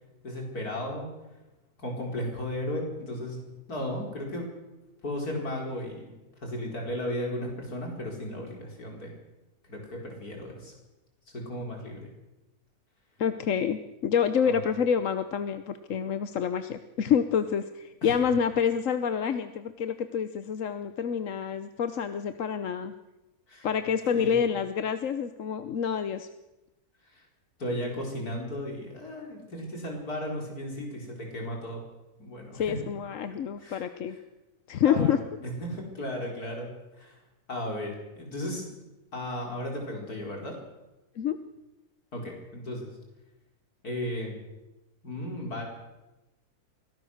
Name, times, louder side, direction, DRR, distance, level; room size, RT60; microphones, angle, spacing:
voice 1, 0.2-1.1 1.8-3.4 3.7-4.5 5.0-6.1 6.4-9.1 9.7-10.7 11.3-12.1 14.5-14.6 18.0-18.2 23.5-23.7 24.1-24.5 27.1-27.2 27.6-31.8 32.2-32.8 33.6-34.2 34.8-36.7 37.0-37.2 37.5-38.7 39.1-40.6 42.1-42.9 43.8-44.4 45.0-45.6, left 1 dB, 90° left, 0 dB, 5.1 m, -35 dB
voice 2, 13.2-22.9 23.6-26.3 32.5-34.1 34.7-35.2 41.2-41.4, left 7 dB, 60° left, 10 dB, 1.2 m, -27 dB
24.0 x 17.0 x 6.5 m, 1.0 s
omnidirectional pair, 1.6 m